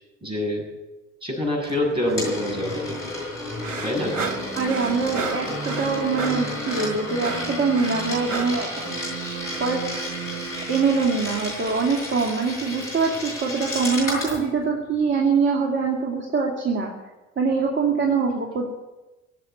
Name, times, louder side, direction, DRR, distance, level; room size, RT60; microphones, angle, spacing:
voice 1, 0.2-0.6 1.2-3.0 3.8-4.2, left 1 dB, 15° right, 0 dB, 7.4 m, -26 dB
Coin (dropping), 1.6-14.4, left 1 dB, 80° left, 6.3 m, -32 dB
sound 1, 3.6-8.7, right 5 dB, 90° right, 0.7 m, -32 dB
sound 2, 4.0-11.4, right 3 dB, 50° right, 3.0 m, -36 dB
voice 2, 4.5-8.7 9.6-10.0 10.7-16.9 17.4-18.7, right 4 dB, 30° right, 1 dB, 2.6 m, -24 dB
18.0 x 8.3 x 9.5 m, 1.1 s
figure-of-eight pair, 60°, 37 cm